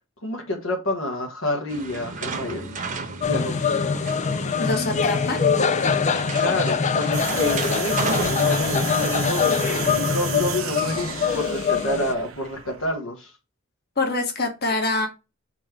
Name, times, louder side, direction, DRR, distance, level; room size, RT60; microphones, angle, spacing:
voice 1, 0.2-2.8 3.2-3.6 6.3-9.6 9.9-13.3, left 1 dB, 70° left, 1.4 m, -29 dB
sound 1, 1.7-10.6, right 4 dB, 40° right, 1.1 m, -35 dB
sound 2, 3.2-12.1, left 6 dB, 35° left, 0.5 m, -23 dB
voice 2, 4.6-5.4 14.0-15.1, left 2 dB, 50° left, 1.6 m, -24 dB
sound 3, 7.1-12.9, right 7 dB, 75° right, 1.0 m, -32 dB
4.7 x 4.5 x 4.4 m
head